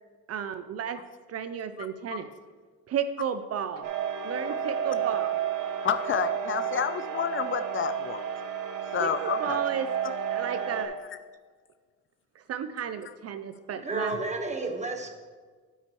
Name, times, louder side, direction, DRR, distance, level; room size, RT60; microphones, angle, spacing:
voice 1, 0.3-1.0 1.3-2.3 2.9-3.9 4.2-5.3 9.0-9.9 10.3-11.0 12.5-14.1, right 8 dB, 55° right, 10 dB, 0.5 m, -33 dB
voice 2, 1.8-2.2 5.8-8.3 8.9-9.6 10.0-10.1 11.1-11.2, left 8 dB, 45° left, 12 dB, 0.4 m, -30 dB
sound 1, 3.8-10.9, right 8 dB, 80° right, 0.9 m, -31 dB
voice 3, 13.7-15.1, right 2 dB, 25° right, 4 dB, 1.2 m, -31 dB
9.1 x 8.7 x 3.0 m, 1.5 s
cardioid pair, 90°, 30 cm